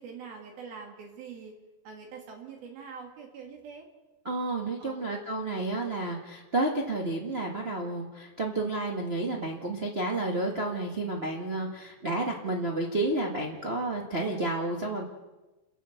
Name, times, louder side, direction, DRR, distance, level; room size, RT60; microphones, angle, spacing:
voice 1, 0.0-1.5 1.8-3.9 4.8-5.1, right 6 dB, 70° right, 2 dB, 4.1 m, -44 dB
voice 2, 4.2-15.0, right 2 dB, 30° right, -1 dB, 1.0 m, -31 dB
29.5 x 11.0 x 8.1 m, 1.1 s
omnidirectional pair, 4.5 m